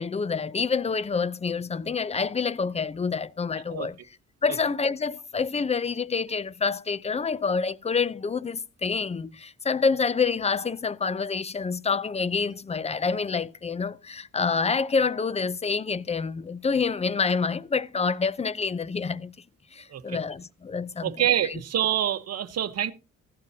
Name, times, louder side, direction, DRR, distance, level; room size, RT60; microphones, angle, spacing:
voice 1, 0.0-4.0 4.4-19.3 19.7-21.1, left 5 dB, 20° left, 0.6 m, -27 dB
voice 2, 21.0-22.9, right 11 dB, 55° right, 1.1 m, -26 dB
15.5 x 11.5 x 2.8 m
cardioid pair, 90°, 30 cm